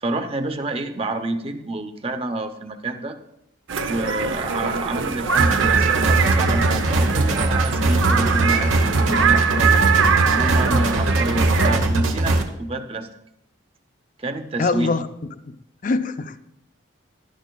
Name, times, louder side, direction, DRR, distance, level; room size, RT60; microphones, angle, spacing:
voice 1, 0.0-3.2 3.9-9.9 10.3-13.1 14.2-14.9, right 2 dB, 30° right, 8 dB, 0.8 m, -28 dB
sound 1, 3.7-11.8, right 6 dB, 70° right, 0.7 m, -22 dB
sound 2, 5.4-12.4, right 2 dB, 90° right, 1.1 m, -20 dB
voice 2, 14.6-16.4, left 3 dB, 40° left, 11 dB, 0.5 m, -25 dB
17.0 x 11.5 x 2.3 m, 0.82 s
head